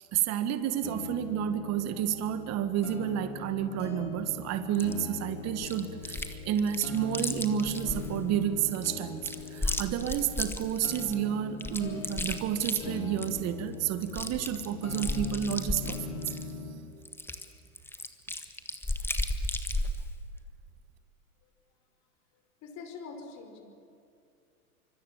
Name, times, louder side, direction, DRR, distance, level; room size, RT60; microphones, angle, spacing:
voice 1, 0.1-16.2, right 10 dB, 35° right, 9 dB, 1.8 m, -30 dB
sound 1, 0.8-16.8, left 5 dB, 70° left, 4.8 m, -41 dB
Chewing mastication, 4.7-4.9 5.6-6.3 6.6-8.1 8.6-11.1 11.6-13.5 13.7-13.8 14.0-16.5 17.1-20.1, left 2 dB, 5° left, 1.6 m, -34 dB
voice 2, 22.6-23.6, left 4 dB, 40° left, 5 dB, 5.5 m, -44 dB
25.5 x 25.0 x 7.4 m, 2.5 s
hypercardioid pair, 105°, 45 cm